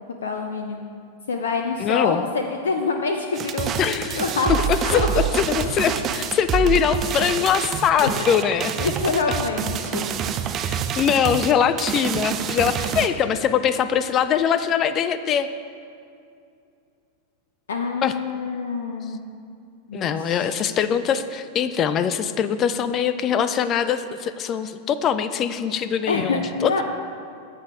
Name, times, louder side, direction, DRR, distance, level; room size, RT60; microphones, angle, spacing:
voice 1, 0.2-0.8 1.3-4.5 4.8-5.1 8.0-8.1 8.8-10.0 17.7-19.2 19.9-20.5 26.1-26.8, left 4 dB, 65° left, 3 dB, 0.7 m, -26 dB
voice 2, 1.8-2.3 3.8-4.2 4.7-5.0 5.4-8.7 10.7-15.5 18.0-18.1 19.9-26.8, left 8 dB, 30° left, 12 dB, 0.5 m, -22 dB
sound 1, 3.3-13.1, right 8 dB, 30° right, 0.6 m, -27 dB
15.0 x 8.7 x 3.5 m, 2.4 s
figure-of-eight pair, 90°, 0 cm